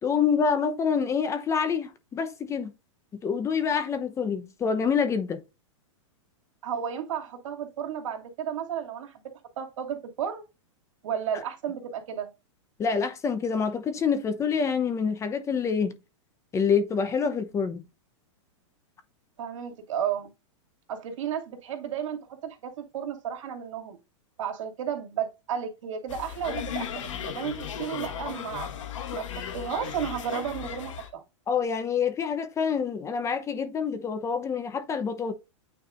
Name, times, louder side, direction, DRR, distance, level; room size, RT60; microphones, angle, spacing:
voice 1, 0.0-2.7 3.2-5.4 12.8-15.9 16.5-17.8 31.5-35.3, left 6 dB, 20° left, 0.8 m, -26 dB
voice 2, 6.6-9.2 9.6-10.4 11.0-12.3 19.4-20.3 20.9-24.0 24.4-28.7 29.1-31.2, right 8 dB, 75° right, 2.4 m, -33 dB
sound 1, 26.1-31.1, left 9 dB, 75° left, 1.4 m, -36 dB
9.2 x 4.7 x 2.5 m
hypercardioid pair, 140°, 17 cm